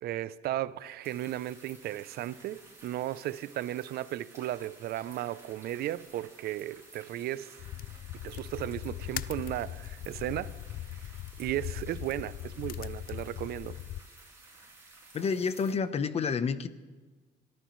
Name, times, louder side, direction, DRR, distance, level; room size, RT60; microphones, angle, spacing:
voice 1, 0.0-7.5 8.2-10.5 11.4-13.8, right 13 dB, 70° right, 0.6 m, -35 dB
sound 1, 1.0-15.7, right 2 dB, 15° right, 6.1 m, -54 dB
sound 2, 7.6-14.0, left 13 dB, 60° left, 0.4 m, -40 dB
voice 2, 15.1-16.7, left 5 dB, 40° left, 0.9 m, -29 dB
26.5 x 14.0 x 3.2 m
cardioid pair, 110°, 17 cm